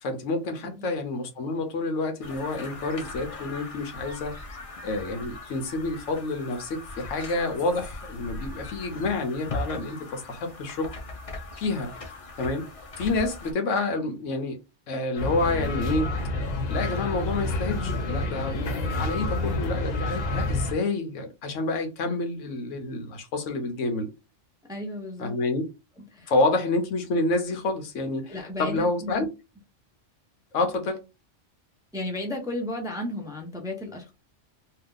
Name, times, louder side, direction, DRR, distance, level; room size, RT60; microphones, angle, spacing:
voice 1, 0.0-4.4 4.8-10.9 11.6-11.9 12.4-12.7 13.0-14.6 14.9-16.1 16.7-24.1 25.2-25.6 26.3-29.3 30.5-31.0, left 2 dB, 90° left, 1.1 m, -28 dB
sound 1, 2.2-13.5, left 2 dB, 45° left, 0.5 m, -39 dB
sound 2, 15.1-20.7, left 2 dB, 60° left, 0.9 m, -28 dB
voice 2, 24.7-25.3 26.1-26.3 28.3-29.2 31.9-34.1, left 1 dB, 5° right, 0.6 m, -34 dB
2.8 x 2.3 x 3.7 m
omnidirectional pair, 1.3 m